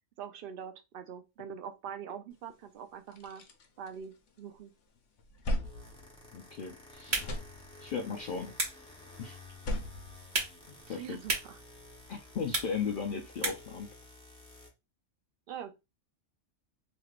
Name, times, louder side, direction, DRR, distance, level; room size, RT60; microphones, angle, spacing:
voice 1, 0.2-3.4 3.8-4.7 10.9-11.6 15.5-15.7, right 8 dB, 60° right, 0.7 m, -43 dB
sound 1, 2.5-2.6 2.9-4.6 5.0-6.8 7.1-8.1 9.4-11.1, equal, 85° left, 1.0 m, -38 dB
sound 2, 5.4-14.7, left 2 dB, 5° left, 0.7 m, -53 dB
voice 2, 6.3-7.3 7.8-8.5 9.2-9.4 10.7-11.2 12.1-13.9, left 6 dB, 60° left, 0.6 m, -36 dB
sound 3, 6.9-13.8, right 3 dB, 45° right, 1.2 m, -38 dB
3.2 x 3.0 x 2.4 m
omnidirectional pair, 1.2 m